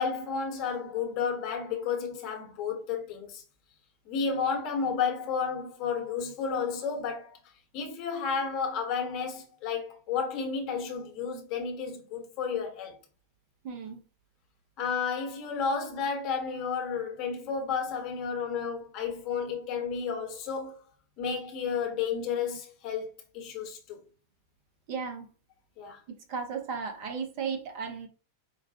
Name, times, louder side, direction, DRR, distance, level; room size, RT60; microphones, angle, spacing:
voice 1, 0.0-3.4 4.0-7.4 7.7-13.0 14.8-20.8 21.2-24.0 25.8-26.0, left 6 dB, 40° left, 1.2 m, -32 dB
voice 2, 13.6-14.0 24.9-25.3 26.3-28.1, right 5 dB, 45° right, 1.1 m, -35 dB
5.0 x 2.5 x 2.8 m
figure-of-eight pair, 90°, 0 cm